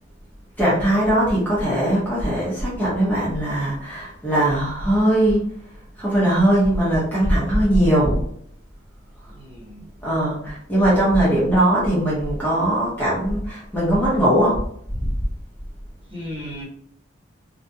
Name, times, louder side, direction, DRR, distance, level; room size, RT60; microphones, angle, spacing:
voice 1, 0.6-5.4 6.0-8.2 9.2-9.3 10.0-14.6 14.9-15.2, right 1 dB, 10° left, -8 dB, 0.8 m, -20 dB
voice 2, 9.3-9.9 16.1-16.6, equal, 25° right, -7 dB, 1.0 m, -35 dB
2.4 x 2.2 x 2.6 m, 0.66 s
head